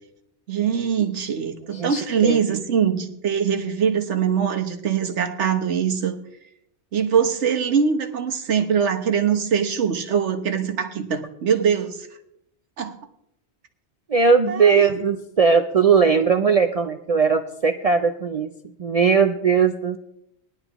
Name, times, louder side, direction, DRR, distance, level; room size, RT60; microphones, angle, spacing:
voice 1, 0.5-6.2 6.9-12.1 12.8-13.0 14.5-14.8, right 7 dB, 80° right, 6 dB, 1.3 m, -22 dB
voice 2, 1.7-2.6 14.1-18.5 18.8-20.0, right 5 dB, 45° right, 6 dB, 0.5 m, -19 dB
19.5 x 11.0 x 3.0 m, 0.77 s
omnidirectional pair, 1.2 m